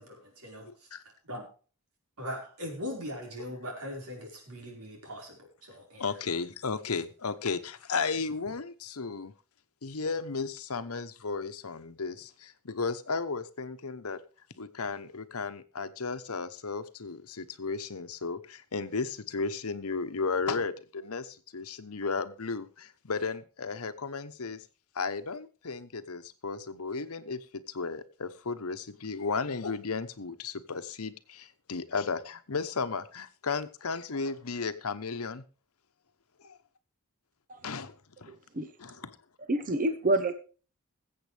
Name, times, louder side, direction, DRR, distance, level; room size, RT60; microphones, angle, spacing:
voice 1, 0.0-1.4 2.2-6.0, equal, 90° right, 1 dB, 4.8 m, -40 dB
voice 2, 0.5-1.0 6.0-9.3 9.8-14.2 14.6-24.6 24.9-35.4 36.4-36.6 37.6-38.4 38.8-39.2, left 4 dB, 75° left, 10 dB, 1.0 m, -34 dB
voice 3, 38.3-38.7 39.5-40.3, right 2 dB, 40° right, 10 dB, 0.9 m, -27 dB
21.5 x 7.9 x 3.4 m, 0.37 s
head